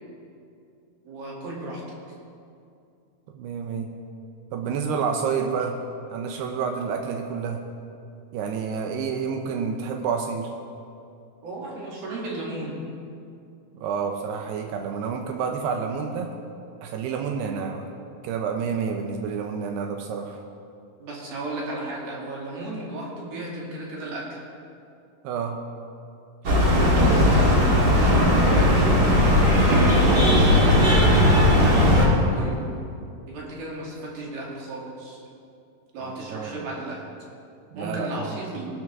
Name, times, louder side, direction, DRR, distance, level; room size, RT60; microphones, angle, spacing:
voice 1, 1.0-1.8 6.3-6.4 11.4-12.8 21.0-24.4 26.4-32.6 33.3-35.2 35.9-37.0 37.8-38.7, right 2 dB, 65° right, -4 dB, 4.5 m, -35 dB
voice 2, 3.3-3.9 4.5-5.8 6.1-7.6 8.3-10.5 13.7-16.3 16.8-17.9 18.2-20.4 25.2-25.6 36.0-36.7 37.7-38.4, right 6 dB, 80° right, 3 dB, 2.9 m, -29 dB
sound 1, 26.4-32.1, left 1 dB, 40° right, 1.5 m, -17 dB
20.5 x 12.5 x 3.6 m, 2.5 s
omnidirectional pair, 4.7 m